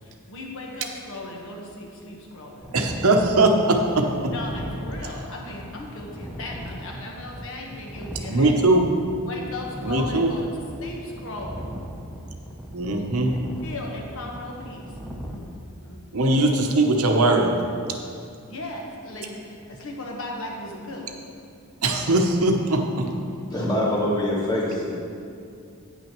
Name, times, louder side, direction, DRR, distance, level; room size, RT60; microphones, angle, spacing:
voice 1, 0.0-2.7 4.3-8.6 9.3-10.5 10.8-11.7 13.6-14.9 15.3-15.5 15.8-16.4 18.5-21.1, left 1 dB, 60° left, 0 dB, 1.3 m, -37 dB
sound 1, 2.6-15.4, equal, 5° right, 0.7 m, -38 dB
voice 2, 2.7-4.3 8.3-8.9 9.8-10.3 12.7-13.3 16.1-17.6 21.8-23.1, right 2 dB, 70° right, 3 dB, 0.8 m, -20 dB
voice 3, 23.5-25.0, left 1 dB, 20° left, -5 dB, 1.5 m, -24 dB
9.2 x 9.0 x 3.1 m, 2.4 s
head